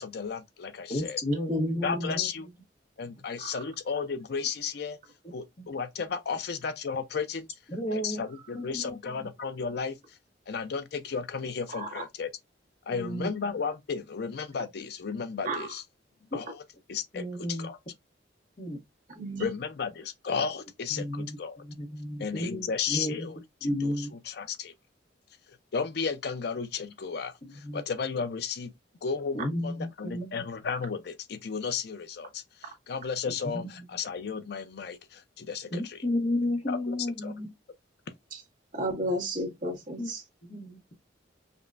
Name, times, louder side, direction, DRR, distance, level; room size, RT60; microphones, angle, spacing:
voice 1, 0.0-1.2 1.8-2.5 3.0-5.0 5.3-7.5 7.9-10.2 10.5-12.3 12.9-15.8 16.3-16.6 16.9-17.8 19.4-21.6 22.2-23.4 23.8-24.7 25.7-28.7 29.0-29.7 30.0-32.4 32.9-36.0 36.7-36.9 37.2-37.3, left 5 dB, 60° left, 0.5 m, -34 dB
voice 2, 0.9-2.3 5.2-5.7 7.7-8.3 8.5-9.3 12.9-13.3 17.1-17.7 18.6-18.8 20.9-21.4 21.6-23.3 23.6-24.2 27.4-27.8 29.3-30.4 33.3-33.9 35.7-37.5 40.0-40.1 40.4-40.9, left 1 dB, 35° left, 0.9 m, -33 dB
voice 3, 1.5-2.2 3.4-3.5 11.7-12.0 15.4-15.7 19.1-19.5 38.3-38.4 38.7-40.2, equal, 45° right, 1.5 m, -32 dB
5.2 x 2.1 x 2.5 m
head